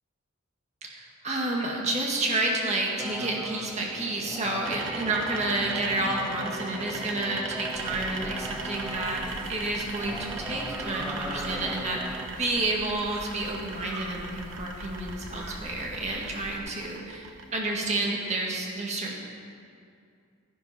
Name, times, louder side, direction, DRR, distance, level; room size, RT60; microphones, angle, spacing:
voice 1, 0.8-17.3 17.5-19.2, right 2 dB, 30° right, -1 dB, 1.9 m, -30 dB
sound 1, 3.0-12.3, equal, 5° right, 0.6 m, -39 dB
sound 2, 4.6-17.9, right 4 dB, 60° right, 1.1 m, -40 dB
sound 3, 7.7-16.6, right 1 dB, 85° right, 2.0 m, -42 dB
13.5 x 10.5 x 5.8 m, 2.3 s
head